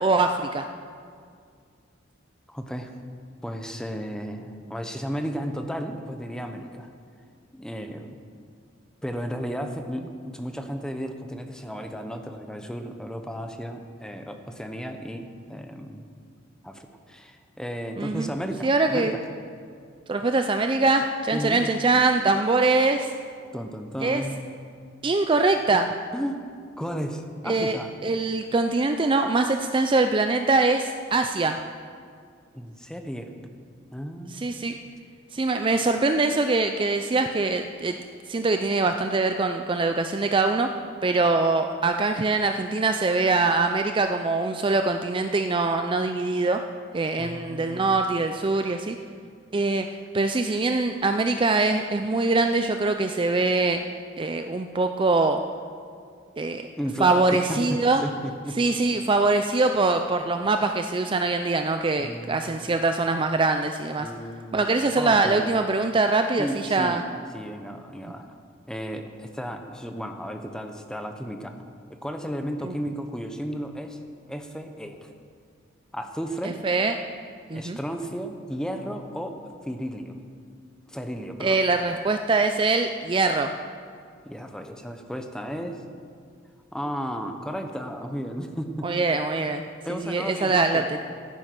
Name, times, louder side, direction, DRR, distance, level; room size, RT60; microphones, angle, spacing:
voice 1, 0.0-0.6 18.0-18.3 18.6-19.1 20.1-23.1 24.0-24.2 25.0-25.9 27.5-27.8 28.0-31.6 34.3-34.7 35.3-38.0 38.3-40.7 41.0-46.6 46.9-49.0 49.5-49.9 50.1-53.8 54.2-55.4 56.4-56.6 57.0-58.0 58.6-64.1 64.5-67.0 72.6-72.7 76.6-76.9 77.5-77.8 81.4-83.5 88.8-89.6 90.0-91.0, right 3 dB, 25° right, 6 dB, 0.4 m, -23 dB
voice 2, 2.5-2.9 3.4-6.9 7.5-8.2 9.0-16.0 16.6-19.2 21.3-21.6 23.5-24.4 26.1-26.4 26.8-27.9 32.5-33.3 33.9-34.4 47.2-48.0 56.8-58.6 62.0-62.7 64.0-64.6 65.0-65.4 66.4-67.1 67.3-68.3 68.7-71.5 71.9-74.0 74.3-75.1 75.9-76.6 77.5-79.4 79.6-80.2 80.9-81.6 84.2-85.8 86.7-89.1 89.8-90.9, equal, 5° left, 5 dB, 0.9 m, -34 dB
14.5 x 9.8 x 5.9 m, 2.2 s
head